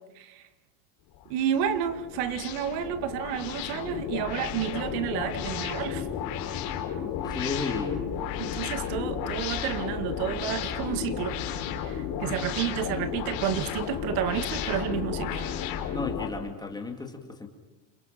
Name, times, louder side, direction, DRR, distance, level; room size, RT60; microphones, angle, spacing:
sound 1, 1.1-16.3, left 8 dB, 45° left, 3.9 m, -33 dB
voice 1, 1.3-6.1 8.4-11.4 11.8-15.5, right 9 dB, 70° right, 11 dB, 2.2 m, -31 dB
voice 2, 7.0-8.0 15.9-17.5, left 4 dB, 10° left, 4 dB, 2.2 m, -34 dB
30.0 x 28.0 x 5.8 m, 0.99 s
cardioid pair, 170°, 49 cm